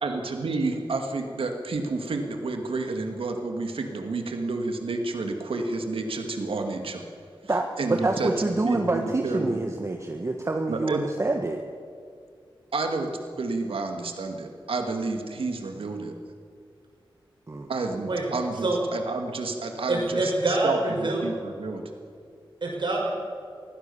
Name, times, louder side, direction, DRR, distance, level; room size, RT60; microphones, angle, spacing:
voice 1, 0.0-7.0 7.8-9.6 10.7-11.0 12.7-13.1 13.4-16.1 17.7-21.8, right 3 dB, 85° right, 4 dB, 2.1 m, -30 dB
voice 2, 7.5-11.6 17.5-17.7, right 2 dB, 35° right, 4 dB, 1.3 m, -27 dB
voice 3, 19.9-21.2 22.6-23.1, right 2 dB, 60° right, -1 dB, 6.0 m, -26 dB
23.5 x 16.0 x 7.1 m, 2.2 s
wide cardioid pair, 100°, 9 cm